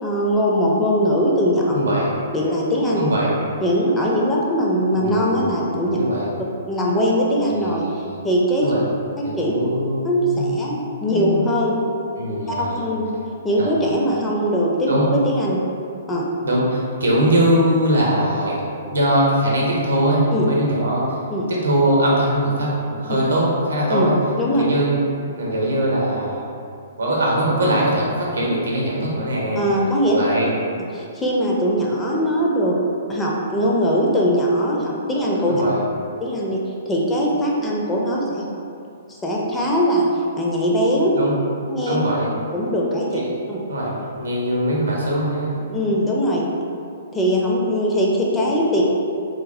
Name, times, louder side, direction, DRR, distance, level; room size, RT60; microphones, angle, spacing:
voice 1, 0.0-1.7 2.3-3.0 3.6-6.0 6.7-7.8 8.2-8.7 9.2-9.6 10.0-11.8 12.3-13.2 13.4-14.9 15.3-15.6 16.1-16.3 20.3-20.5 21.3-21.5 23.9-24.1 24.4-24.6 29.6-30.2 30.9-32.8 33.1-35.5 36.2-36.6 36.9-38.4 39.1-40.1 40.4-41.2 41.7-42.0 42.5-43.2 43.5-43.6 45.7-46.5 47.1-48.8, equal, 10° left, -4 dB, 0.4 m, -21 dB
voice 2, 1.7-2.1 3.0-3.3 5.0-6.3 7.5-8.3 8.6-8.8 9.2-10.6 11.1-11.4 12.2-12.8 13.6-13.7 14.9-15.1 16.4-18.6 18.9-21.0 21.5-24.2 24.6-26.4 27.0-29.6 30.1-30.5 35.4-35.8 41.1-41.4 41.8-42.3 43.1-43.3 43.7-45.6, right 1 dB, 75° right, -4 dB, 0.7 m, -21 dB
3.0 x 2.1 x 2.6 m, 2.5 s
figure-of-eight pair, 120°, 0 cm